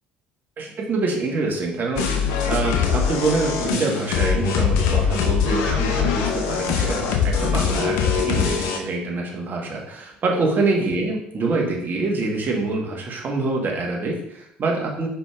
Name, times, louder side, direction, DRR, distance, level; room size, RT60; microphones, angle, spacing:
voice 1, 0.6-15.1, right 3 dB, 40° right, -1 dB, 1.2 m, -25 dB
sound 1, 2.0-8.8, left 7 dB, 65° left, 0.6 m, -22 dB
5.1 x 4.4 x 2.4 m, 0.75 s
hypercardioid pair, 60°, 5 cm